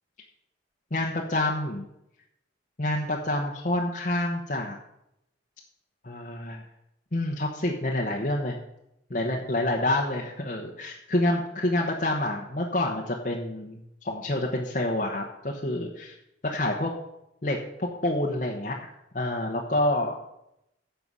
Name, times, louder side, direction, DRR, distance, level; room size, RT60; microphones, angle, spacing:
voice 1, 0.9-1.9 2.8-4.8 6.0-6.6 7.1-8.6 9.1-16.1 16.4-16.9 17.4-20.1, left 1 dB, 45° left, -1 dB, 1.1 m, -28 dB
11.0 x 6.9 x 5.5 m, 0.83 s
head